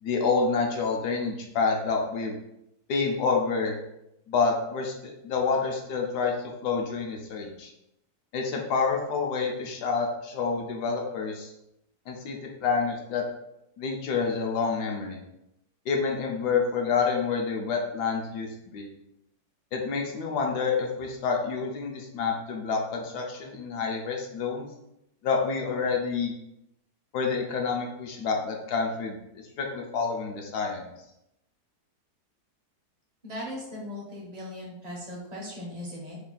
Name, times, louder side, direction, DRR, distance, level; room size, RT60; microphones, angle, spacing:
voice 1, 0.0-2.4 2.9-3.7 4.3-6.3 6.6-7.7 8.3-11.5 12.1-13.2 13.8-15.2 15.9-18.9 19.7-24.7 25.2-26.3 27.1-29.2 29.6-30.9, left 5 dB, 70° left, 1 dB, 1.1 m, -28 dB
voice 2, 33.2-36.2, left 1 dB, 40° right, -3 dB, 0.6 m, -38 dB
3.3 x 2.3 x 3.7 m, 0.84 s
omnidirectional pair, 1.9 m